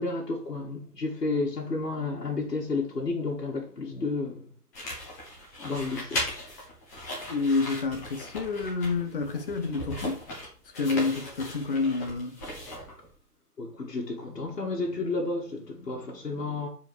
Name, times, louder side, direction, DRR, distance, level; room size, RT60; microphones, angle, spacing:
voice 1, 0.0-4.4 5.6-6.3 10.9-11.0 13.6-16.7, left 3 dB, 80° left, 2.5 m, -31 dB
sound 1, 4.7-13.1, left 1 dB, 10° left, 1.1 m, -38 dB
voice 2, 7.3-10.2 10.7-12.4, left 4 dB, 35° left, 1.2 m, -28 dB
5.1 x 4.9 x 6.3 m
hypercardioid pair, 160°, 47 cm